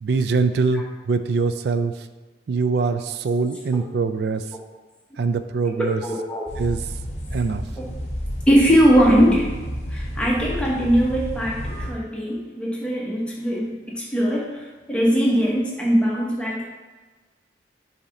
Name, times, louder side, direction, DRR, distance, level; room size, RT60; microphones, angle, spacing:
voice 1, 0.0-2.1 2.5-4.4 5.2-6.0 6.6-6.8 7.3-7.6, right 4 dB, 60° right, 10 dB, 0.3 m, -23 dB
voice 2, 5.8-6.4 8.5-9.5 9.9-16.7, equal, 5° left, -4 dB, 0.9 m, -20 dB
sound 1, 6.5-11.9, equal, 35° left, 1.0 m, -31 dB
7.0 x 2.8 x 5.0 m, 1.3 s
head